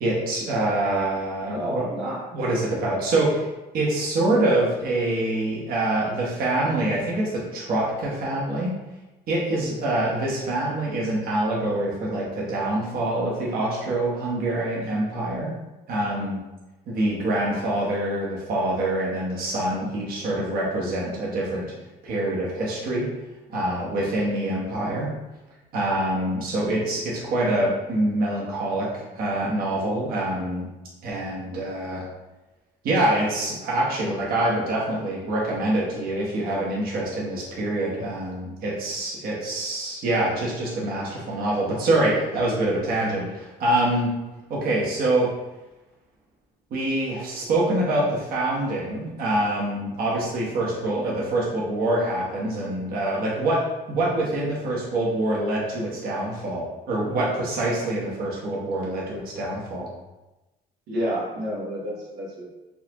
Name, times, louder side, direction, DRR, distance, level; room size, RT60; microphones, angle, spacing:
voice 1, 0.0-1.8 2.3-3.5 3.7-8.7 9.3-15.5 15.9-16.4 16.9-21.7 22.0-23.1 23.5-25.1 25.7-30.7 31.0-32.0 32.8-44.2 44.5-45.3 46.7-53.6 53.9-59.9, right 1 dB, 60° right, -5 dB, 1.1 m, -25 dB
voice 2, 1.5-2.2 60.9-62.5, equal, 80° right, -5 dB, 1.1 m, -29 dB
4.0 x 2.5 x 2.9 m, 1.0 s
cardioid pair, 110°, 17 cm